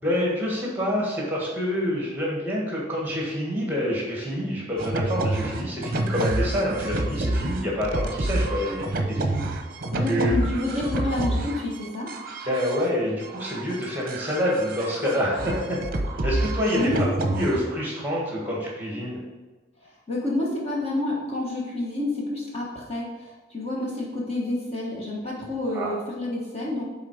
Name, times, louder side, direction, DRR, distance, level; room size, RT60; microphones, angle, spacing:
voice 1, 0.0-9.5 10.1-10.4 12.5-15.8 16.2-16.9 17.3-19.2 25.7-25.9, equal, 10° right, -3 dB, 1.7 m, -27 dB
sound 1, 4.8-17.6, right 2 dB, 45° right, 0.7 m, -28 dB
voice 2, 9.9-12.1 16.7-17.0 17.3-17.4 20.1-23.1 23.5-26.8, left 2 dB, 30° left, -4 dB, 1.2 m, -28 dB
7.5 x 4.0 x 4.8 m, 1.2 s
head